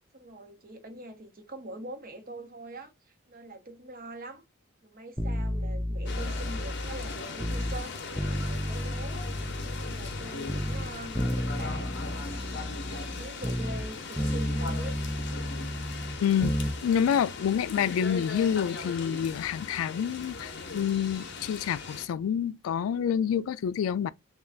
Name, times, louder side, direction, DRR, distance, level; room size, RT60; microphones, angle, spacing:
voice 1, 0.1-2.9 3.3-4.4 4.8-8.0 8.4-9.2 9.6-12.0 12.5-15.0, right 1 dB, 45° right, 0.9 m, -43 dB
sound 1, 5.2-7.8 8.2-10.2 10.5-13.9 14.2-16.8 17.1-17.2, equal, 5° left, 0.3 m, -32 dB
sound 2, 6.1-22.1, left 4 dB, 55° left, 0.6 m, -39 dB
voice 2, 16.2-24.1, left 8 dB, 90° left, 0.3 m, -28 dB
3.2 x 2.3 x 3.8 m
head